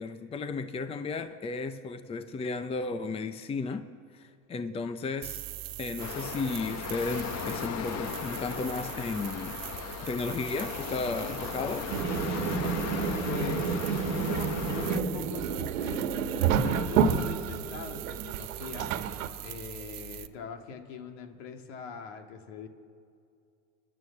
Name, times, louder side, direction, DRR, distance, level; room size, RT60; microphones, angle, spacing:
voice 1, 0.0-3.9 4.1-5.4 5.8-9.6 10.0-11.9, left 4 dB, 15° left, 10 dB, 0.7 m, -34 dB
sound 1, 5.2-20.3, right 16 dB, 45° right, 0.8 m, -42 dB
sound 2, 6.0-15.0, left 7 dB, 40° left, 1.3 m, -37 dB
sound 3, 11.9-19.3, right 6 dB, 85° right, 1.6 m, -29 dB
voice 2, 13.2-19.0 19.4-22.7, left 6 dB, 65° left, 5 dB, 2.4 m, -42 dB
29.5 x 11.5 x 8.5 m, 2.5 s
supercardioid pair, 125°, 39 cm